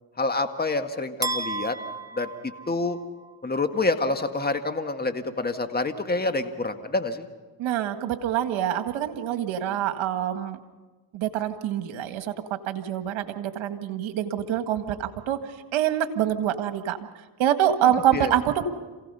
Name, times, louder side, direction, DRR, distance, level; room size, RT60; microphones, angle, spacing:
voice 1, 0.2-1.8 2.2-3.0 3.4-7.3 18.1-18.3, left 3 dB, 20° left, 7 dB, 1.8 m, -27 dB
sound 1, 1.2-3.3, right 3 dB, 5° right, 1.0 m, -33 dB
voice 2, 7.6-10.6 11.1-12.3 12.7-15.4 15.7-17.0 17.4-18.6, right 11 dB, 70° right, 9 dB, 1.8 m, -25 dB
27.5 x 17.0 x 5.6 m, 1.3 s
supercardioid pair, 70°, 49 cm